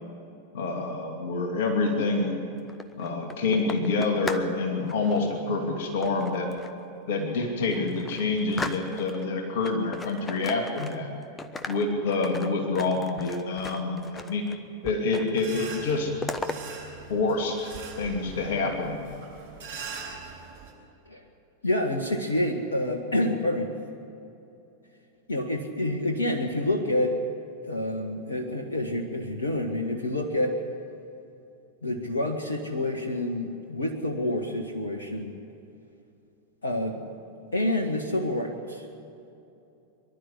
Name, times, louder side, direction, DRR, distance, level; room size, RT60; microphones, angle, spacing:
voice 1, 0.5-2.4 3.0-6.5 7.1-11.1 11.7-14.4 14.8-16.1 17.1-17.7 18.0-19.0, left 3 dB, 55° left, 2 dB, 2.8 m, -27 dB
sound 1, 2.6-4.5 4.8-5.2 6.0-6.8 7.3-7.4 7.7-9.3 9.6-11.1 11.4-14.6 14.8-15.5 15.7-16.6, left 3 dB, 15° left, 1.1 m, -37 dB
sound 2, 15.3-20.7, right 5 dB, 55° right, 6.3 m, -42 dB
voice 2, 21.6-23.7 25.3-27.2 27.6-30.6 31.8-35.4 36.6-37.1 37.5-38.8, left 1 dB, 70° left, 2 dB, 1.6 m, -28 dB
24.5 x 12.0 x 9.9 m, 2.8 s
figure-of-eight pair, 90°, 0 cm